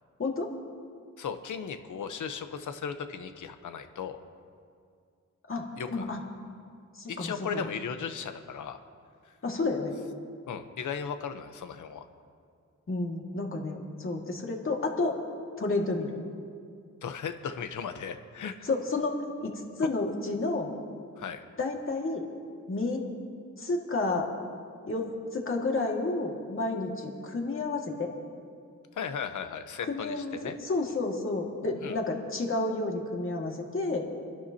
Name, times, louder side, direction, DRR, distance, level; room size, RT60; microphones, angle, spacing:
voice 1, 0.2-0.5 5.5-5.7 5.9-6.2 7.0-7.7 9.4-9.9 12.9-15.2 15.6-16.1 18.6-20.7 21.6-22.3 22.7-23.0 23.6-24.3 24.9-28.1 29.8-30.4 30.6-34.1, left 3 dB, 45° left, 0 dB, 2.1 m, -30 dB
voice 2, 1.2-4.2 5.8-6.2 7.1-8.8 10.5-12.0 17.0-18.7 19.8-19.9 21.2-21.4 28.9-30.5 31.8-32.0, left 6 dB, 85° left, 8 dB, 1.0 m, -36 dB
28.5 x 11.5 x 2.9 m, 2.3 s
cardioid pair, 80°, 30 cm